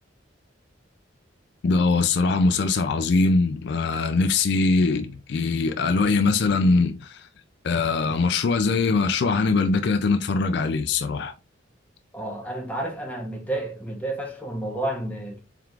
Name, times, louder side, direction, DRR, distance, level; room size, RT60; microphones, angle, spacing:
voice 1, 1.6-7.2 7.6-11.3, left 3 dB, 60° left, 0.4 m, -22 dB
voice 2, 12.1-15.4, right 1 dB, 10° left, 0.9 m, -31 dB
4.5 x 3.5 x 2.4 m
head